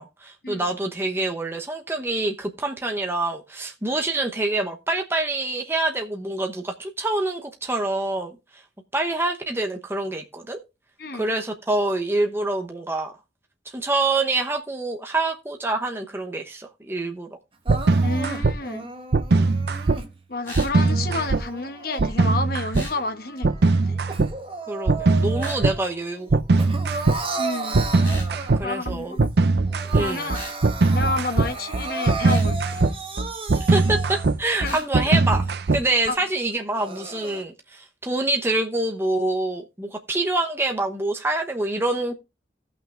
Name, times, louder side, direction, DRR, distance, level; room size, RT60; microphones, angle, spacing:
voice 1, 0.0-8.6 8.9-10.6 11.1-13.1 13.7-17.4 19.4-19.5 24.7-26.7 28.6-29.2 29.8-30.3 33.6-35.4 35.7-42.2, right 2 dB, 15° right, 0.9 m, -26 dB
Crying sobbing, 17.6-20.1 20.7-22.5 22.9-25.9 26.2-28.8 29.3-29.4 29.6-34.5 35.0-35.1 35.7-35.8 36.5-37.4, right 3 dB, 30° right, 1.2 m, -35 dB
sound 1, 17.7-18.5 19.1-20.0 20.5-21.4 22.0-22.9 23.4-24.3 24.9-25.8 26.3-27.2 27.7-36.1, right 3 dB, 65° right, 0.6 m, -20 dB
voice 2, 18.0-18.9 20.3-24.0 27.4-27.8 28.6-29.3 30.0-30.4 30.9-32.8 34.6-34.8 36.1-36.2, left 2 dB, 55° left, 1.2 m, -30 dB
sound 2, 20.4-20.8 22.7-23.0 25.4-25.6 28.0-28.3 30.3-30.6 32.2-32.5 34.6-34.9, left 1 dB, 10° left, 7.0 m, -37 dB
16.0 x 5.9 x 3.7 m
head